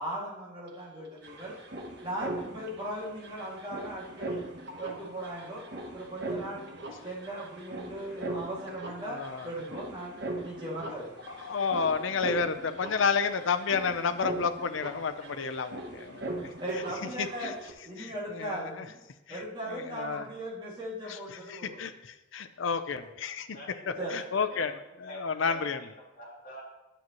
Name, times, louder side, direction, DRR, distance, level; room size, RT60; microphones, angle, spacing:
voice 1, 0.0-1.6 2.0-4.4 4.8-5.6 5.9-6.7 7.0-10.2 10.4-11.1 16.6-17.5 17.8-19.0 19.3-21.8 23.0-23.1 24.0-24.2, right 1 dB, 25° right, -6 dB, 2.2 m, -38 dB
sound 1, 0.7-0.8 0.9-17.7, right 2 dB, 55° right, 1.1 m, -40 dB
voice 2, 9.1-9.5 11.4-16.5 17.2-17.5 18.0-18.6 19.7-20.2 21.5-21.9 22.3-23.5 24.1-24.7 25.1-25.8, left 5 dB, 70° left, 9 dB, 0.5 m, -30 dB
voice 3, 23.5-25.7 26.0-26.6, equal, 40° left, -4 dB, 2.4 m, -47 dB
10.0 x 7.6 x 3.0 m, 1.0 s
head